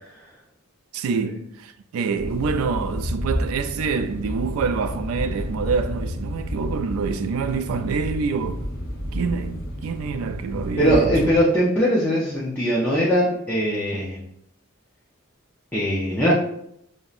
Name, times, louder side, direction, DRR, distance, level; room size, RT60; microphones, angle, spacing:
voice 1, 0.9-8.7 9.1-11.3, right 5 dB, 85° right, 0.3 m, -26 dB
sound 1, 2.2-11.4, equal, 50° left, 0.9 m, -31 dB
voice 2, 10.8-14.2 15.7-16.3, equal, 10° left, 0.5 m, -20 dB
5.3 x 2.1 x 2.4 m
head